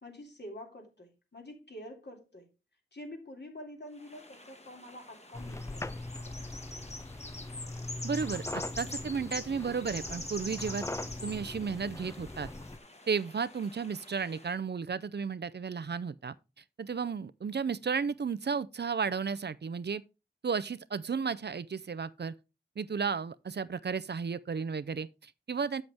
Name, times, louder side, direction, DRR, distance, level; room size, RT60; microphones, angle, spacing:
voice 1, 0.0-2.5 2.9-5.9, left 1 dB, 60° left, 2.7 m, -47 dB
sound 1, 4.0-14.5, left 2 dB, 35° left, 1.5 m, -45 dB
sound 2, 5.3-12.8, left 2 dB, 15° left, 0.4 m, -41 dB
voice 2, 8.0-10.8 11.2-12.5 13.1-16.3 16.8-20.0 20.4-22.3 22.8-25.8, right 5 dB, 60° right, 0.5 m, -33 dB
7.8 x 7.6 x 3.4 m
wide cardioid pair, 70°, 20 cm